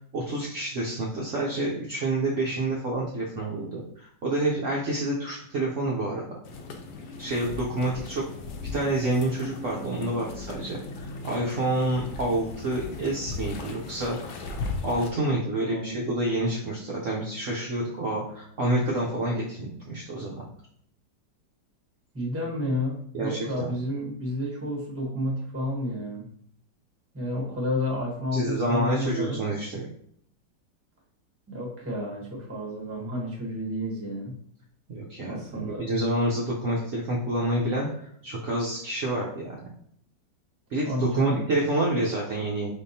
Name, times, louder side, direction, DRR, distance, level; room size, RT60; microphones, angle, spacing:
voice 1, 0.0-6.3 7.2-8.2 8.7-14.2 14.8-20.5 23.1-23.7 28.3-29.9 34.9-39.6 40.7-42.7, right 1 dB, 60° right, -4 dB, 0.9 m, -28 dB
sound 1, 6.4-15.1, left 3 dB, 75° left, 1.2 m, -37 dB
voice 2, 15.6-16.0 22.1-26.2 27.1-29.4 31.5-34.4 35.2-35.9 40.8-41.4, left 1 dB, 10° right, -3 dB, 1.0 m, -31 dB
4.9 x 3.6 x 2.7 m, 0.66 s
omnidirectional pair, 1.9 m